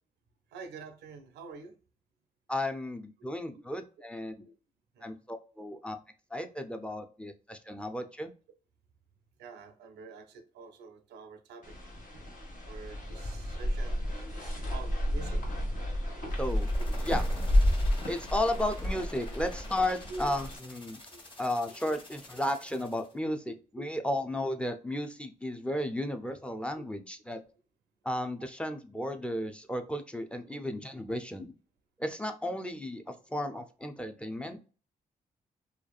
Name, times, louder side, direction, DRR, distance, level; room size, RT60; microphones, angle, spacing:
voice 1, 0.5-1.8 3.5-3.6 4.4-4.5 5.0-5.1 9.4-11.7 12.5-15.9 16.8-16.9 17.7-18.2 20.1-20.3 21.1-21.2 23.2-23.3 24.0-24.1 26.8-26.9, right 4 dB, 85° right, 0.4 m, -47 dB
voice 2, 2.5-4.3 5.0-6.0 6.3-8.3 16.4-16.7 17.0-17.2 18.1-21.0 21.4-27.4 28.0-31.5 32.0-34.6, left 1 dB, 5° left, 0.4 m, -34 dB
sound 1, 11.6-20.6, equal, 60° left, 1.2 m, -31 dB
sound 2, 16.3-23.1, left 2 dB, 30° left, 1.2 m, -48 dB
2.6 x 2.3 x 2.3 m
supercardioid pair, 45°, 17 cm